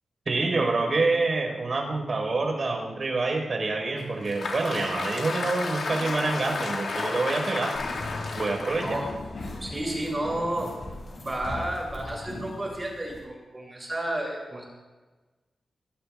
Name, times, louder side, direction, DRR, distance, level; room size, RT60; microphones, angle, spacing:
voice 1, 0.2-7.8 8.3-9.0, right 3 dB, 50° right, 2 dB, 4.9 m, -27 dB
Applause, 4.0-10.3, left 3 dB, 85° left, 2.2 m, -33 dB
sound 1, 7.7-13.2, left 2 dB, 55° left, 6.7 m, -39 dB
voice 2, 8.8-9.2 9.6-10.7 11.2-14.6, right 1 dB, 20° right, -2 dB, 7.0 m, -31 dB
24.0 x 22.5 x 2.5 m, 1.2 s
wide cardioid pair, 135°, 0 cm